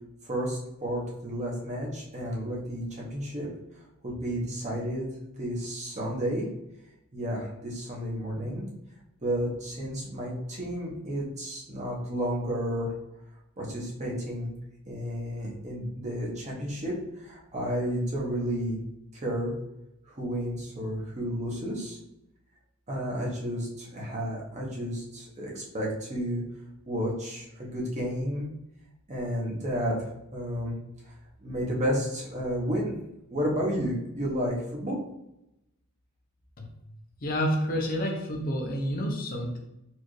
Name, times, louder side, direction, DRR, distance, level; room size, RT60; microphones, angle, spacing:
voice 1, 0.2-3.5 4.0-5.1 5.4-6.5 7.1-8.6 9.2-12.9 13.6-14.5 14.8-18.8 19.2-19.5 20.2-22.0 22.9-26.4 26.9-28.4 29.1-30.0 30.3-30.7 31.4-32.9 33.3-35.0, equal, 35° right, -3 dB, 0.9 m, -31 dB
voice 2, 37.2-39.6, equal, 45° left, 1 dB, 0.7 m, -29 dB
4.3 x 2.5 x 3.1 m, 0.87 s
head